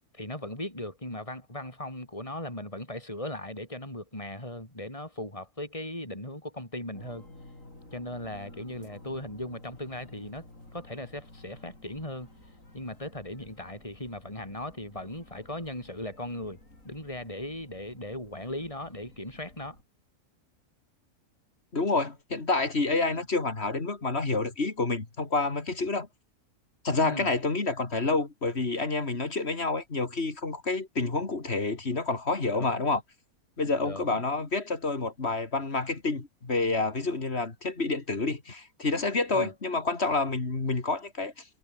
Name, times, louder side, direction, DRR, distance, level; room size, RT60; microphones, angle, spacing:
voice 1, 0.1-7.2 7.9-10.5 10.7-12.3 12.7-16.6 16.8-19.8 23.1-23.2 27.0-27.3 32.5-32.9 33.8-34.2 39.3-39.5, left 1 dB, 20° left, 7.1 m, -38 dB
sound 1, 6.9-19.8, left 1 dB, 60° left, 7.8 m, -52 dB
voice 2, 21.7-26.1 26.8-33.0 33.6-41.4, left 3 dB, 45° left, 2.9 m, -28 dB
omnidirectional pair, 1.6 m